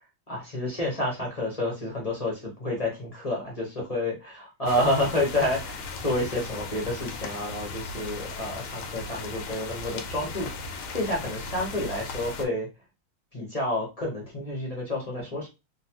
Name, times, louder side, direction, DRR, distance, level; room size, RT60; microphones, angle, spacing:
voice 1, 0.3-10.5 10.9-12.7 13.3-15.5, left 1 dB, 40° left, -3 dB, 0.5 m, -29 dB
sound 1, 4.7-12.5, left 3 dB, 90° left, 1.5 m, -37 dB
3.9 x 2.2 x 2.8 m, 0.26 s
omnidirectional pair, 2.3 m